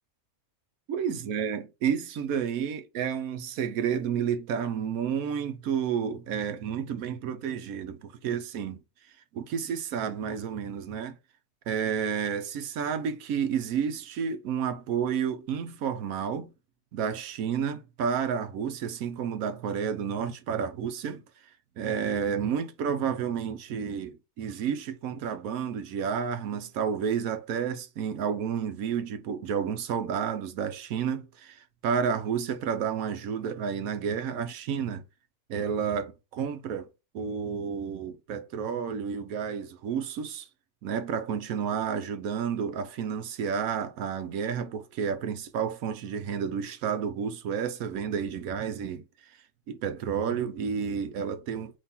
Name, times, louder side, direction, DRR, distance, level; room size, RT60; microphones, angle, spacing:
voice 1, 0.9-8.8 9.1-11.2 11.7-16.5 16.9-35.0 35.5-36.9 37.1-40.5 40.8-51.8, right 7 dB, 75° right, 1.1 m, -31 dB
4.2 x 2.9 x 3.6 m
omnidirectional pair, 1.6 m